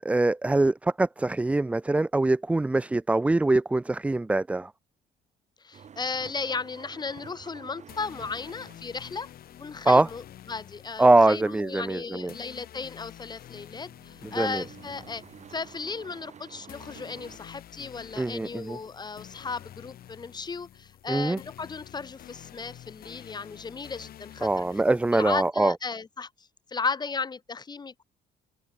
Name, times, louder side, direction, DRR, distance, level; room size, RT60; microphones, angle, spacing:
voice 1, 0.0-4.7 9.9-10.1 11.0-12.3 14.3-14.6 18.2-18.8 21.1-21.4 24.4-25.7, right 2 dB, 10° right, 0.3 m, -23 dB
voice 2, 5.6-9.3 9.6-15.2 15.5-24.6 25.1-26.3 26.7-28.0, left 4 dB, 25° left, 1.1 m, -35 dB
sound 1, 5.7-17.4, right 7 dB, 45° right, 7.3 m, -51 dB
sound 2, 7.9-25.5, left 11 dB, 60° left, 6.2 m, -49 dB
open air
cardioid pair, 110°, 17 cm